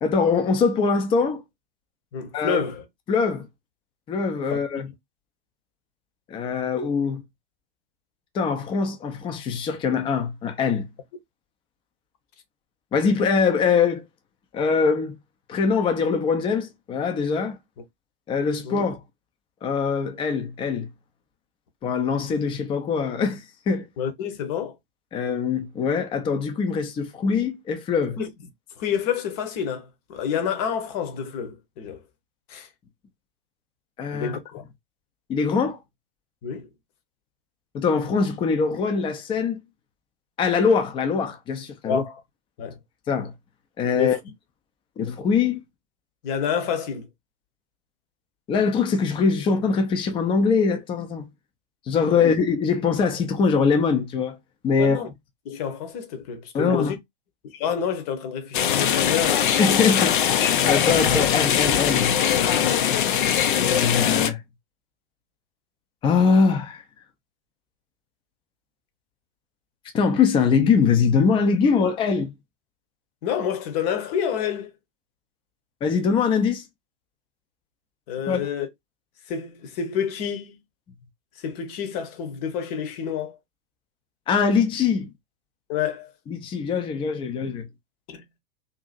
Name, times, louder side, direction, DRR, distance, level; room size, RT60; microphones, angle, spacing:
voice 1, 0.0-1.4 2.3-2.6 3.1-3.5 4.1-4.9 6.3-7.2 8.3-10.9 12.9-14.0 14.5-15.1 15.5-17.6 18.3-19.0 19.6-20.9 21.8-23.9 25.1-28.2 34.0-34.4 35.3-35.8 37.7-39.6 40.4-42.0 43.1-43.3 43.8-44.2 45.0-45.6 48.5-51.3 51.9-54.4 54.6-55.0 56.5-56.9 59.6-60.2 60.6-62.2 63.7-64.4 66.0-66.8 69.9-72.3 75.8-76.6 78.3-78.4 84.3-85.1 86.3-87.7, left 5 dB, 20° left, 0.5 m, -22 dB
voice 2, 2.1-2.8 4.5-4.6 18.6-18.9 24.0-24.7 28.2-28.3 28.8-32.0 32.5-32.7 34.1-34.7 36.4-36.7 41.8-42.1 42.6-42.8 44.0-44.2 46.2-47.1 52.1-52.3 54.8-55.1 55.4-57.0 57.5-59.5 73.2-74.7 78.1-78.7 79.3-80.6 81.4-83.4 85.7-86.1 88.1-88.2, left 7 dB, 40° left, 0.9 m, -28 dB
sound 1, 58.5-64.3, left 9 dB, 60° left, 0.6 m, -21 dB
2.7 x 2.6 x 2.4 m
figure-of-eight pair, 105°, 29 cm